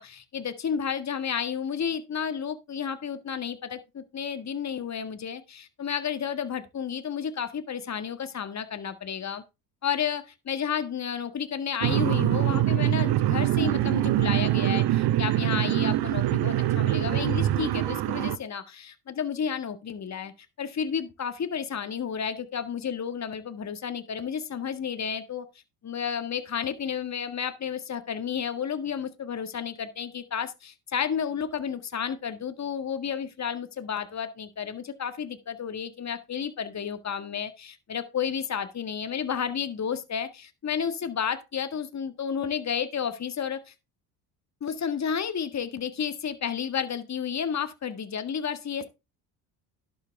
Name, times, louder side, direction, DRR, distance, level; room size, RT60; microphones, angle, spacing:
voice 1, 0.0-9.4 9.8-20.3 20.6-25.4 25.8-43.7 44.6-48.8, left 7 dB, 35° left, 1.7 m, -31 dB
sound 1, 11.8-18.4, right 14 dB, 55° right, 0.9 m, -24 dB
11.5 x 7.7 x 3.4 m
hypercardioid pair, 65°, 48 cm